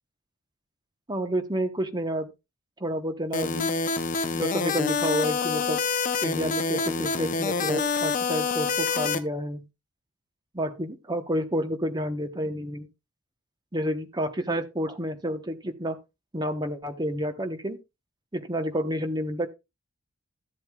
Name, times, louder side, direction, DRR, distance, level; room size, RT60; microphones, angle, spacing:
voice 1, 1.1-2.3 2.8-3.7 4.3-5.8 6.2-9.7 10.5-12.9 13.7-16.0 16.3-17.8 18.3-19.5, equal, 20° right, 1.0 m, -29 dB
sound 1, 3.3-9.2, left 4 dB, 35° left, 0.7 m, -27 dB
14.0 x 7.8 x 2.3 m
head